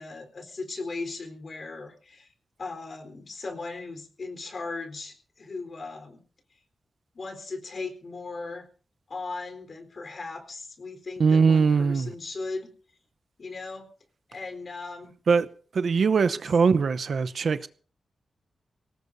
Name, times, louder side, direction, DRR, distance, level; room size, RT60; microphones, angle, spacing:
voice 1, 0.0-2.3 2.6-6.2 7.1-8.7 9.1-12.7 13.4-13.9 14.3-15.1, left 3 dB, 55° left, 4.1 m, -37 dB
voice 2, 11.2-12.1 15.3-15.5 15.7-17.7, right 5 dB, 70° right, 0.8 m, -21 dB
23.5 x 18.5 x 2.7 m
cardioid pair, 75°, 0 cm